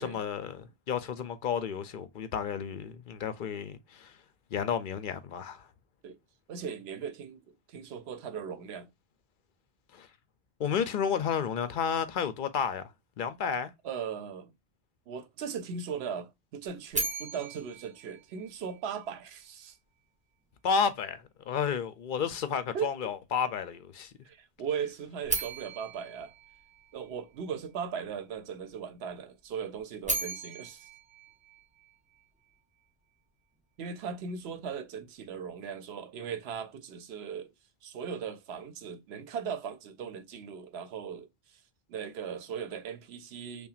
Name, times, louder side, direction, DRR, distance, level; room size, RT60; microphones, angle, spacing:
voice 1, 0.0-4.2 4.5-5.7 9.9-10.1 10.6-12.9 13.2-13.7 20.6-24.1, left 7 dB, 60° left, 0.6 m, -31 dB
voice 2, 6.5-8.9 13.8-14.5 15.1-19.8 22.7-22.9 24.2-26.3 26.9-30.9 33.8-37.5 37.8-41.6 41.9-43.7, right 7 dB, 85° right, 0.9 m, -38 dB
sound 1, 16.9-19.1 25.2-27.4 29.8-32.2, right 2 dB, 10° right, 0.8 m, -37 dB
5.6 x 2.2 x 2.4 m
omnidirectional pair, 1.0 m